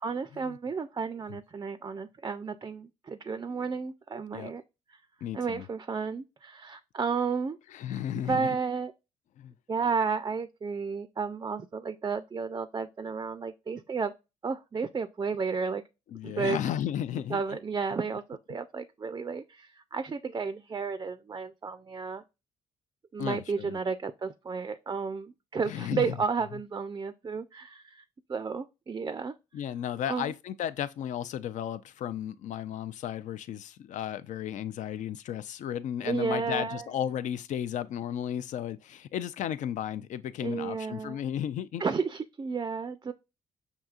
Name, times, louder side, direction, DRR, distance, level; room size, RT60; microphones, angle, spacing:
voice 1, 0.0-4.6 4.9-5.0 5.3-7.6 8.1-8.9 9.7-14.1 14.4-15.8 16.2-16.6 17.3-22.2 23.1-28.0 28.3-29.3 30.1-30.3 36.0-36.9 40.4-41.2 41.8-43.1, right 5 dB, 25° right, 0.4 m, -32 dB
voice 2, 5.2-5.6 7.7-8.6 9.4-9.5 16.1-17.4 23.2-23.8 25.7-26.2 29.5-41.8, left 10 dB, 60° left, 0.4 m, -34 dB
5.9 x 2.7 x 2.4 m
supercardioid pair, 55°, 14 cm